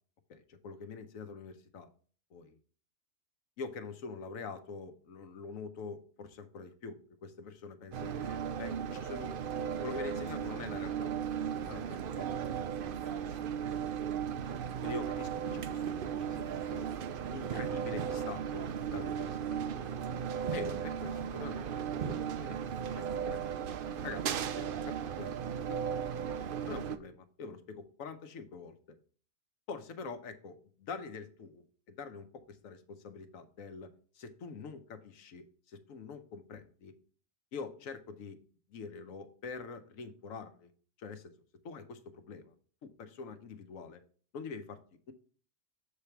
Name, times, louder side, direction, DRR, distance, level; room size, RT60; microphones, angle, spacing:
voice 1, 0.3-1.9 2.3-2.6 3.6-9.3 9.8-11.1 11.6-12.3 13.0-13.1 14.8-16.9 17.3-20.0 20.5-22.7 23.0-23.4 24.0-24.3 24.5-25.4 25.7-26.0 26.6-29.0 29.7-36.9 37.5-38.4 38.7-40.7 41.0-41.3 41.6-42.5 42.8-44.0 44.3-44.8 45.1-45.2, left 4 dB, 70° left, 9 dB, 1.1 m, -45 dB
sound 1, 7.9-27.0, right 8 dB, 70° right, 0.5 m, -36 dB
7.4 x 3.3 x 5.8 m, 0.43 s
omnidirectional pair, 1.5 m